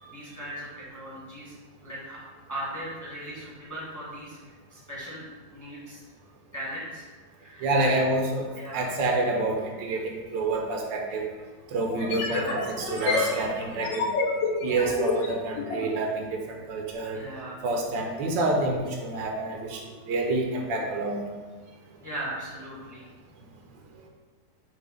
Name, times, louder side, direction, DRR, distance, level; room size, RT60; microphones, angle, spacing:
voice 1, 0.1-1.5 1.8-2.2 2.5-4.4 4.7-6.0 6.5-7.1 7.4-8.0 8.6-8.9 12.2-12.6 17.1-17.6 22.0-23.0, right 1 dB, 15° left, -7 dB, 0.9 m, -38 dB
voice 2, 7.6-11.3 11.7-14.1 14.6-17.2 17.6-21.2, right 2 dB, 80° right, 1 dB, 1.4 m, -28 dB
sound 1, 10.5-10.6 11.9-15.9, left 4 dB, 85° left, 1.3 m, -29 dB
3.9 x 2.8 x 4.8 m, 1.3 s
omnidirectional pair, 2.0 m